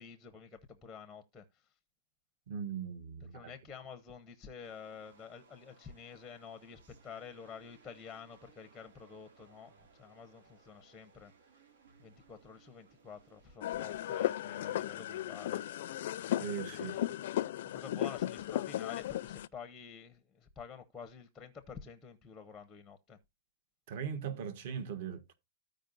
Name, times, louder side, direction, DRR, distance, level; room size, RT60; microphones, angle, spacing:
voice 1, 0.0-1.6 3.3-11.3 12.0-15.6 16.7-17.0 17.7-23.2, left 6 dB, 5° left, 0.7 m, -49 dB
voice 2, 2.5-3.5 16.3-16.9 23.9-25.3, right 7 dB, 45° right, 1.4 m, -39 dB
sound 1, 4.6-13.6, right 5 dB, 80° right, 2.8 m, -64 dB
sound 2, 13.6-19.5, left 12 dB, 55° left, 0.4 m, -35 dB
15.0 x 5.0 x 2.5 m
supercardioid pair, 175°, 0 cm